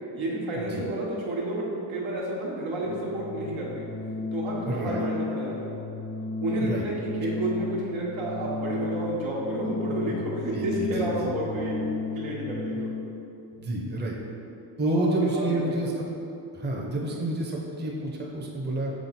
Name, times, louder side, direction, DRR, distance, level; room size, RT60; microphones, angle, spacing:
voice 1, 0.1-3.9 4.3-5.7 6.4-11.9 12.1-12.9 14.8-15.1 15.3-15.9 17.1-17.2, right 1 dB, 85° right, -5 dB, 1.4 m, -31 dB
Organ, 2.7-13.1, left 4 dB, 30° left, 0.4 m, -34 dB
voice 2, 4.6-5.1 6.6-6.8 10.1-10.2 10.5-11.3 12.7-12.8 13.6-14.1 14.8-16.1 16.5-18.9, right 1 dB, 25° right, -2 dB, 0.7 m, -29 dB
6.2 x 3.7 x 4.1 m, 2.8 s
wide cardioid pair, 135°, 46 cm